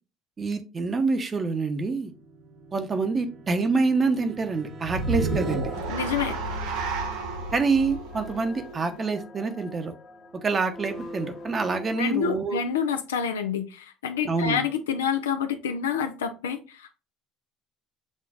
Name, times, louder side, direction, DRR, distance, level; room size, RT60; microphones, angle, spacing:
voice 1, 0.4-2.1 2.7-5.7 7.5-9.9 10.4-12.6 14.2-14.6, right 4 dB, 35° right, 7 dB, 0.9 m, -26 dB
sound 1, 1.7-7.3, equal, 55° right, 1.1 m, -44 dB
sound 2, 4.8-9.2, right 3 dB, 80° right, 0.8 m, -31 dB
sound 3, 4.9-12.0, left 1 dB, 45° left, 1.3 m, -44 dB
voice 2, 5.9-6.4 12.0-17.0, left 7 dB, 90° left, 7 dB, 0.4 m, -28 dB
7.3 x 2.5 x 2.5 m, 0.32 s
hypercardioid pair, 65°, 0 cm